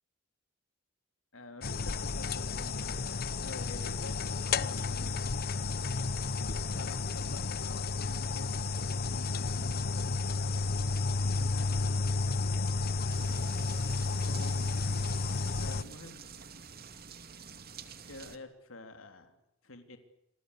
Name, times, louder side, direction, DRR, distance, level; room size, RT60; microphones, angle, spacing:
voice 1, 1.3-5.2 6.7-10.2 11.2-11.9 12.6-13.2 14.2-14.8 15.6-16.2 18.1-19.4 19.6-20.0, left 2 dB, 75° left, 7 dB, 3.4 m, -49 dB
sound 1, 1.6-15.8, left 3 dB, 50° left, 1.0 m, -32 dB
sound 2, 13.1-18.4, right 6 dB, 50° right, 2.5 m, -48 dB
28.5 x 23.0 x 8.3 m, 0.82 s
head